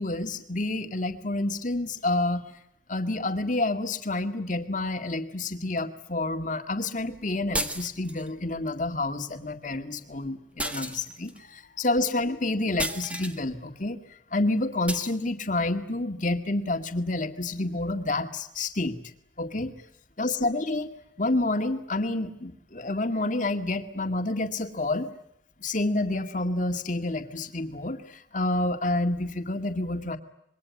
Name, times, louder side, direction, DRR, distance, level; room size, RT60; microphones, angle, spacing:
voice 1, 0.0-2.4 2.9-14.0 14.3-19.0 19.4-19.7 20.2-20.9 21.2-25.1 25.6-30.2, left 2 dB, 40° left, 7 dB, 2.0 m, -28 dB
sound 1, 7.5-8.3 10.6-11.4 12.8-13.4 14.9-15.2, right 1 dB, 5° right, 1.6 m, -32 dB
26.5 x 22.5 x 9.5 m, 0.76 s
head